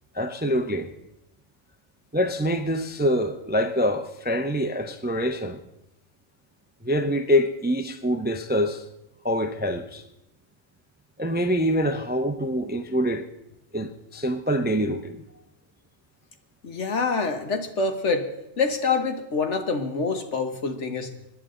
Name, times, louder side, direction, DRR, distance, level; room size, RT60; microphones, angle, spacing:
voice 1, 0.1-0.9 2.1-5.6 6.8-8.8 9.2-10.0 11.2-13.3 13.7-15.2, equal, 10° right, 0.5 m, -25 dB
voice 2, 16.6-18.3 18.6-21.1, left 4 dB, 65° left, 1.6 m, -26 dB
25.5 x 10.5 x 3.8 m
omnidirectional pair, 1.3 m